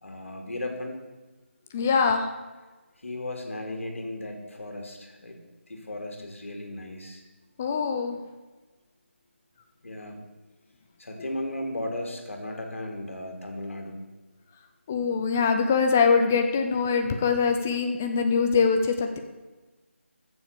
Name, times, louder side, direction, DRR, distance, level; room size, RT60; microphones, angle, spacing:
voice 1, 0.0-1.0 3.0-5.4 5.7-7.2 9.8-10.3 11.0-14.1, left 1 dB, 75° left, 3 dB, 3.0 m, -35 dB
voice 2, 1.7-2.3 7.6-8.2 14.9-19.2, left 5 dB, 10° left, 6 dB, 0.4 m, -23 dB
14.0 x 7.2 x 6.8 m, 1.2 s
figure-of-eight pair, 175°, 7 cm